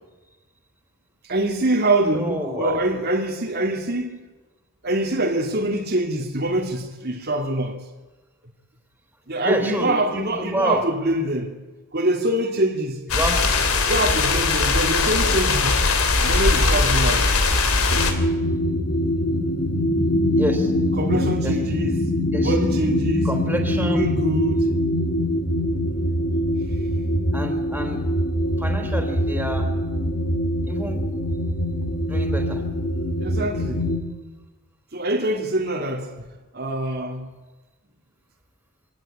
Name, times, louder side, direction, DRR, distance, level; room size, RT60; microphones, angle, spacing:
voice 1, 1.2-4.2 4.8-7.8 9.3-11.6 11.9-13.0 13.8-15.8 16.2-17.3 21.0-22.0 22.4-23.3 23.8-24.7 33.2-33.9 34.9-36.1 36.5-37.3, right 1 dB, 45° right, 2.3 m, -24 dB
voice 2, 2.1-2.8 9.4-10.8 13.1-13.4 20.4-20.7 21.4-21.6 22.3-22.5 23.2-24.0 27.3-28.0 28.6-29.7 30.7-31.0 32.1-32.6, equal, 10° right, 3.8 m, -28 dB
sound 1, 13.1-18.1, left 3 dB, 75° left, 3.4 m, -20 dB
sound 2, 17.9-34.0, equal, 50° left, 2.9 m, -23 dB
25.5 x 18.0 x 10.0 m
head